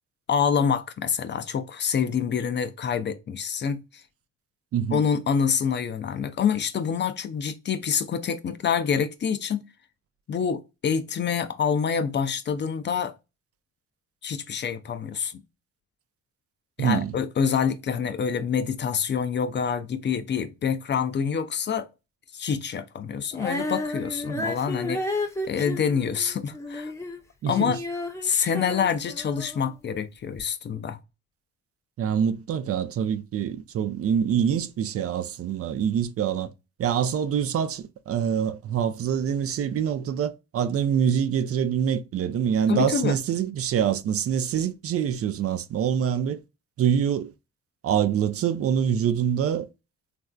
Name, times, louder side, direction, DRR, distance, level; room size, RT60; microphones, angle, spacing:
voice 1, 0.3-4.0 4.9-9.6 10.3-13.1 14.2-15.3 16.8-21.9 22.3-25.0 25.5-26.9 27.5-27.8 28.2-31.0 42.7-43.2, left 7 dB, 40° left, 0.4 m, -26 dB
voice 2, 16.8-17.1 24.4-24.5 27.4-27.7 32.0-36.5 36.8-46.4 46.8-47.3 47.8-49.7, right 8 dB, 50° right, 0.4 m, -25 dB
Female singing, 23.3-29.7 30.4-30.5, left 2 dB, 10° left, 0.7 m, -32 dB
3.2 x 2.5 x 2.2 m
cardioid pair, 90°, 30 cm